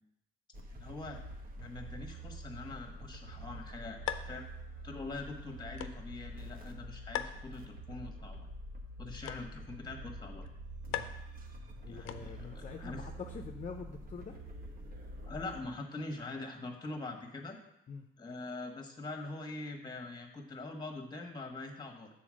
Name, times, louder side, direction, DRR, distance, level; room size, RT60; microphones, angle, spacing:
sound 1, 0.5-15.6, right 1 dB, 50° right, 1.1 m, -46 dB
voice 1, 0.7-1.2 1.6-4.4 4.8-8.5 9.0-10.5 11.9-13.0 15.2-17.6 18.2-22.1, left 2 dB, 20° left, 3 dB, 1.3 m, -43 dB
sound 2, 3.3-12.6, left 11 dB, 80° left, 0.5 m, -45 dB
voice 2, 11.8-14.4 17.9-18.1, left 5 dB, 40° left, 3 dB, 0.6 m, -45 dB
7.0 x 4.1 x 6.3 m, 0.85 s
cardioid pair, 90°, 20 cm